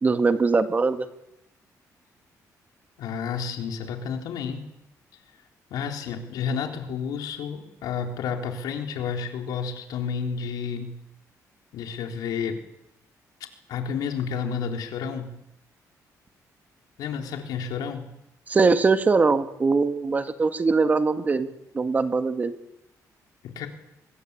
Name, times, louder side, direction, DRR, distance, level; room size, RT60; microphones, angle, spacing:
voice 1, 0.0-1.1 18.5-21.5 21.7-22.5, right 4 dB, 25° right, 9 dB, 1.6 m, -21 dB
voice 2, 3.0-4.7 5.7-10.9 11.7-12.6 13.7-15.3 17.0-18.1 23.4-23.7, left 6 dB, 90° left, 4 dB, 4.0 m, -31 dB
25.0 x 21.0 x 8.4 m, 0.84 s
cardioid pair, 150°, 6 cm